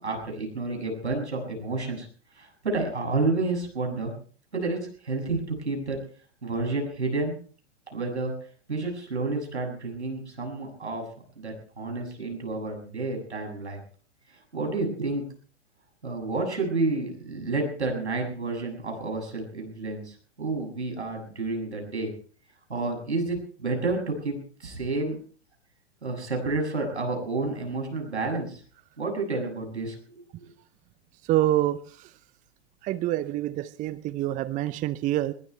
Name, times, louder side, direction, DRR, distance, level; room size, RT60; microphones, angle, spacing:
voice 1, 0.0-2.1 2.4-4.1 4.5-6.0 6.4-7.4 7.9-8.3 8.7-11.0 11.4-13.8 14.5-15.2 16.0-22.1 22.7-25.2 26.0-28.6 29.0-30.0 30.4-30.5, right 3 dB, 85° right, 3 dB, 7.5 m, -30 dB
voice 2, 31.3-31.8 32.8-35.3, right 14 dB, 25° right, 15 dB, 0.7 m, -26 dB
21.5 x 20.0 x 3.4 m, 0.43 s
figure-of-eight pair, 110°, 33 cm